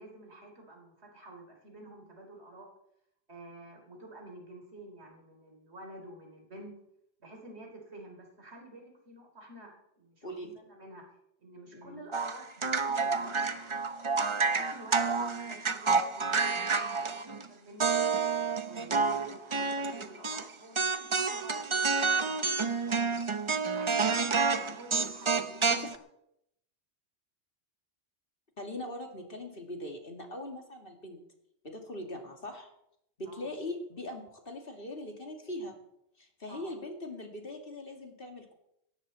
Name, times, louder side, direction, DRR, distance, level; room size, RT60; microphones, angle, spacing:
voice 1, 0.0-2.7 3.3-6.7 7.2-11.0 11.4-13.8 14.3-18.4 18.6-23.2 23.7-25.8 33.3-33.5 36.5-36.7, right 1 dB, 70° right, 2 dB, 4.0 m, -50 dB
sound 1, 12.1-17.4 17.8-20.4 20.7-25.9, right 4 dB, 30° right, 0.7 m, -29 dB
voice 2, 28.6-31.2 31.6-32.7 33.2-35.7 36.2-38.5, left 1 dB, 55° left, 2 dB, 2.7 m, -41 dB
18.0 x 14.0 x 4.3 m, 0.78 s
omnidirectional pair, 1.1 m